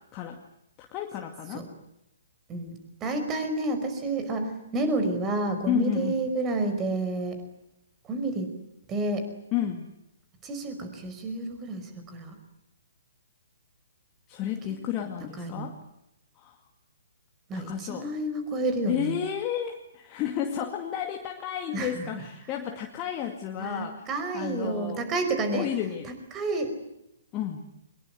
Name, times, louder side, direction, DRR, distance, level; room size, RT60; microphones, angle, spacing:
voice 1, 0.8-1.7 5.7-6.1 9.5-9.9 14.3-15.8 16.4-16.5 17.5-18.1 18.9-24.1 24.3-25.0 25.5-26.1 27.3-27.7, left 10 dB, 25° left, 3 dB, 2.2 m, -32 dB
voice 2, 2.5-7.4 8.0-8.5 8.9-9.3 10.4-12.4 15.4-15.7 17.5-19.1 21.7-22.2 23.6-25.7 26.0-26.7, right 2 dB, 20° right, 7 dB, 5.0 m, -30 dB
24.0 x 21.5 x 9.5 m, 0.84 s
figure-of-eight pair, 125°, 0 cm